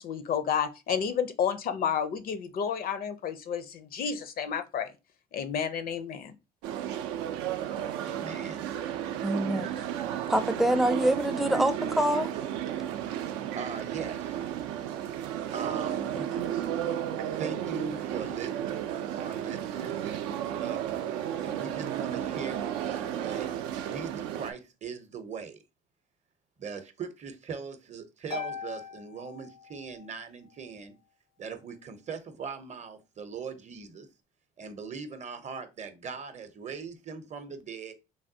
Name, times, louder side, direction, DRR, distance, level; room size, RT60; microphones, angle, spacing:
voice 1, 0.0-4.9 5.3-6.3, left 7 dB, 50° left, 0.5 m, -31 dB
sound 1, 6.6-24.5, right 10 dB, 80° right, 0.4 m, -33 dB
voice 2, 8.0-8.6 13.6-14.6 15.5-16.2 16.9-17.0 17.4-18.6 18.9-20.9 21.4-23.5 23.8-25.6 26.6-30.9 31.4-34.1 34.6-37.9, right 5 dB, 40° right, 0.7 m, -40 dB
voice 3, 9.2-9.7 10.3-12.3 16.1-16.3, right 1 dB, ahead, 0.4 m, -25 dB
Harp, 28.3-30.2, left 5 dB, 90° left, 1.3 m, -40 dB
3.3 x 2.2 x 2.7 m
hypercardioid pair, 65°, 19 cm